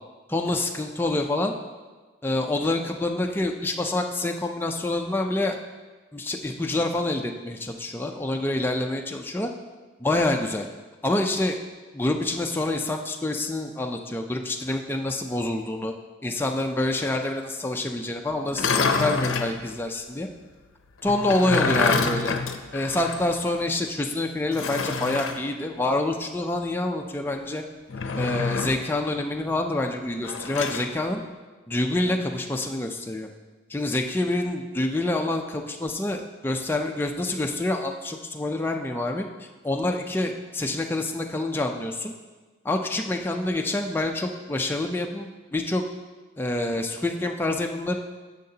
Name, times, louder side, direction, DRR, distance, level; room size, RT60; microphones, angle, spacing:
voice 1, 0.3-1.5 2.2-5.6 6.1-9.5 10.0-10.7 11.0-11.6 11.9-15.9 16.2-20.3 21.0-22.3 22.7-27.6 28.2-31.2 31.7-33.3 33.7-42.1 42.6-45.8 46.4-47.9, left 2 dB, 10° left, 3 dB, 0.3 m, -27 dB
sound 1, 18.5-19.6 21.1-23.3 23.6-23.7 24.5-25.4 27.9-28.9 30.2-30.9, left 4 dB, 75° left, 0.6 m, -26 dB
10.5 x 6.5 x 2.8 m, 1.3 s
head